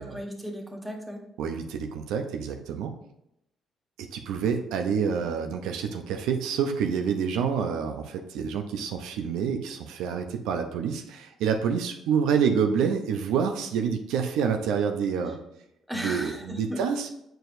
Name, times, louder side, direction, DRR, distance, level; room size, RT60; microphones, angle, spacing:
voice 1, 0.0-1.2 15.9-16.8, equal, ahead, 0 dB, 1.4 m, -35 dB
voice 2, 1.4-2.9 4.0-15.4 15.9-17.1, right 7 dB, 90° right, 5 dB, 0.7 m, -27 dB
7.7 x 4.7 x 2.6 m, 0.80 s
cardioid pair, 90°, 0 cm